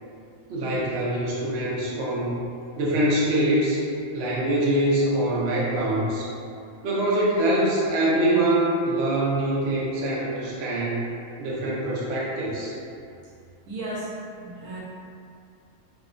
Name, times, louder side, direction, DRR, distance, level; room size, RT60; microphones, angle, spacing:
voice 1, 0.5-2.4 2.8-3.8 4.1-6.3 6.8-11.0 11.4-12.7, right 1 dB, 60° right, -6 dB, 0.7 m, -24 dB
voice 2, 13.7-14.8, right 1 dB, 85° right, -6 dB, 1.1 m, -34 dB
2.8 x 2.1 x 2.5 m, 2.5 s
omnidirectional pair, 1.5 m